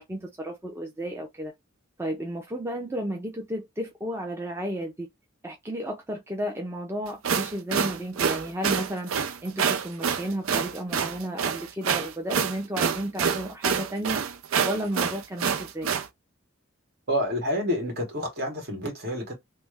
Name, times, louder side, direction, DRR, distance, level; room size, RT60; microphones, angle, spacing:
voice 1, 0.0-1.5 2.0-5.1 5.4-14.2 14.6-15.9, equal, 15° right, 0.5 m, -33 dB
sound 1, 7.1-16.1, right 7 dB, 85° right, 0.5 m, -27 dB
voice 2, 17.1-19.4, equal, 55° right, 1.5 m, -28 dB
3.3 x 2.1 x 3.2 m
head